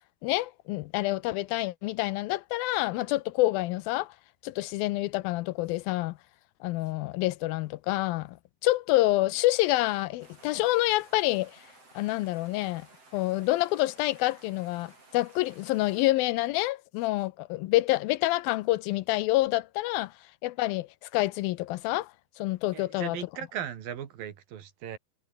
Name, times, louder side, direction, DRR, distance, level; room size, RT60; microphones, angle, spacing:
voice 1, 0.2-4.1 4.4-6.2 6.6-8.4 8.6-11.6 12.0-12.9 13.1-20.1 20.4-22.1 22.4-23.2, left 18 dB, 80° left, 2.4 m, -27 dB
sound 1, 10.2-16.1, right 3 dB, 40° right, 9.2 m, -56 dB
voice 2, 22.7-25.0, right 9 dB, 70° right, 3.7 m, -38 dB
omnidirectional pair, 4.4 m